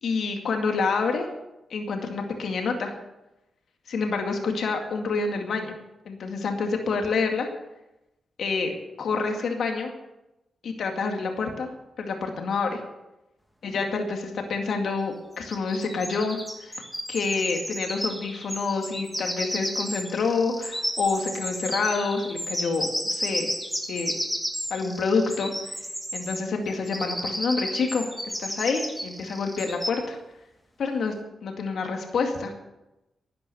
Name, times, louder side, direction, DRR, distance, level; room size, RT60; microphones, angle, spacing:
voice 1, 0.0-1.3 1.7-2.9 3.9-5.7 6.1-7.5 8.4-9.9 10.6-11.7 12.0-12.8 13.6-16.8 17.1-23.5 23.9-24.1 24.7-25.7 26.1-30.2 30.8-31.1 31.4-32.5, left 4 dB, 75° left, 3 dB, 2.2 m, -27 dB
sound 1, 15.4-26.4 26.7-29.9, equal, 5° left, 2.9 m, -32 dB
12.0 x 9.6 x 8.1 m, 0.95 s
cardioid pair, 80°, 0 cm